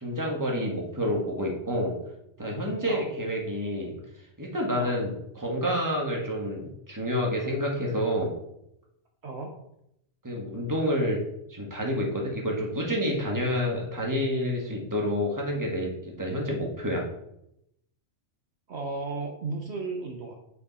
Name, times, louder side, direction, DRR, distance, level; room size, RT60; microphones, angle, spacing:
voice 1, 0.0-1.9 2.4-3.9 4.4-8.3 10.2-11.2 11.5-17.0, equal, 15° right, -1 dB, 1.6 m, -28 dB
voice 2, 18.7-20.3, right 3 dB, 60° right, 2 dB, 1.1 m, -34 dB
8.3 x 4.6 x 4.1 m, 0.80 s
omnidirectional pair, 1.3 m